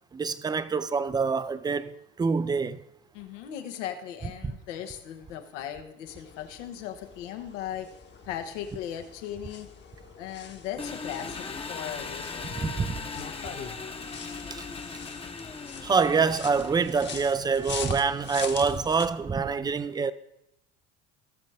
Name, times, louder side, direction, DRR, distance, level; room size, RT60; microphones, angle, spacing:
voice 1, 0.1-2.8 4.4-4.5 12.5-13.0 14.5-14.7 15.8-20.1, right 5 dB, 10° right, 0.4 m, -26 dB
voice 2, 3.1-12.5, left 10 dB, 90° left, 1.3 m, -38 dB
sound 1, 6.1-19.1, left 6 dB, 30° left, 1.0 m, -43 dB
Engine, 10.8-17.3, left 4 dB, 15° left, 0.8 m, -39 dB
18.0 x 6.5 x 3.4 m
supercardioid pair, 100°, 36 cm